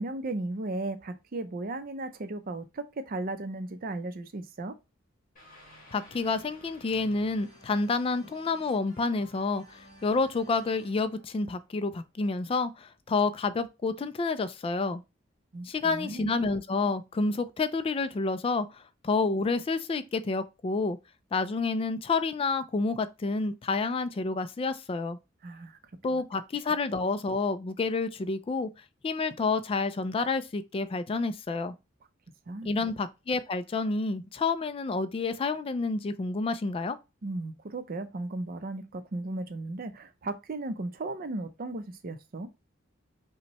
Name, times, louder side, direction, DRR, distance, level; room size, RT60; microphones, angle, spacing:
voice 1, 0.0-4.7 15.5-16.3 25.4-25.8 32.5-32.7 37.2-42.5, right 2 dB, 45° right, 0.5 m, -35 dB
sound 1, 5.4-12.3, equal, 45° left, 1.9 m, -55 dB
voice 2, 5.9-15.0 15.6-21.0 21.3-25.2 26.0-28.7 29.0-31.8 32.6-37.0, left 3 dB, 30° left, 0.3 m, -29 dB
5.3 x 2.2 x 2.9 m
head